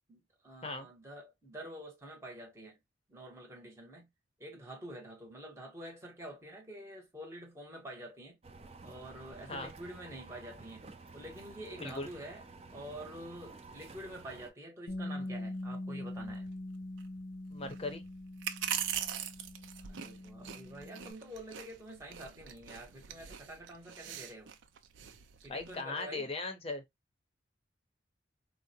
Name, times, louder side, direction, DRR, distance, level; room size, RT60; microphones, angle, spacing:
voice 1, 0.1-2.8 3.1-4.1 4.4-8.4 8.8-10.9 11.1-12.4 12.7-16.5 17.6-17.7 19.9-24.6 25.4-26.3, right 1 dB, 15° right, 0.8 m, -47 dB
sound 1, 8.4-14.5, right 3 dB, 30° right, 0.4 m, -52 dB
Bass guitar, 14.9-21.1, left 1 dB, 85° left, 0.6 m, -43 dB
sound 2, 15.2-25.8, right 9 dB, 90° right, 0.5 m, -43 dB
voice 2, 17.5-18.0 25.5-26.8, left 3 dB, 30° left, 0.6 m, -38 dB
3.7 x 2.0 x 2.6 m
head